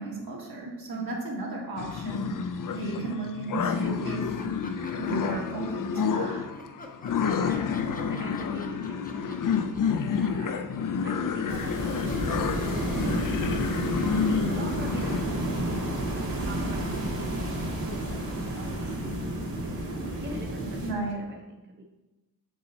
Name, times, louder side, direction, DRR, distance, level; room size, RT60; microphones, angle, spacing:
voice 1, 0.0-2.3 2.8-4.3 5.0-6.4 20.8-21.1, right 2 dB, 75° right, -3 dB, 1.9 m, -34 dB
sound 1, 1.8-15.2, left 6 dB, 60° left, 0.5 m, -29 dB
sound 2, 4.4-6.0 6.5-14.8, left 3 dB, 25° left, 0.7 m, -48 dB
voice 2, 7.2-12.0 12.6-16.0 16.4-19.2 19.7-21.8, right 1 dB, 30° right, 1 dB, 0.7 m, -43 dB
sound 3, 11.5-20.9, right 1 dB, 60° right, 1.8 m, -31 dB
6.8 x 5.4 x 4.1 m, 1.1 s
wide cardioid pair, 180°, 37 cm